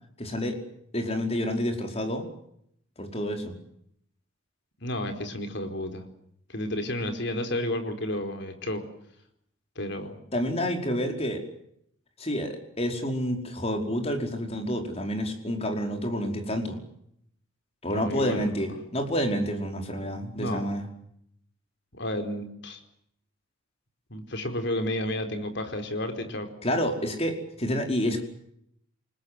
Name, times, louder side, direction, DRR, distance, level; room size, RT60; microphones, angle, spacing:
voice 1, 0.2-0.6 0.9-2.3 3.0-3.5 10.3-11.4 12.2-16.8 17.8-20.8 26.6-28.2, equal, 30° left, 4 dB, 5.1 m, -29 dB
voice 2, 4.8-6.0 6.5-8.8 9.8-10.1 17.9-18.5 20.4-20.7 22.0-22.8 24.1-26.5, left 1 dB, 60° left, 6 dB, 4.6 m, -31 dB
29.0 x 20.5 x 7.9 m, 0.72 s
head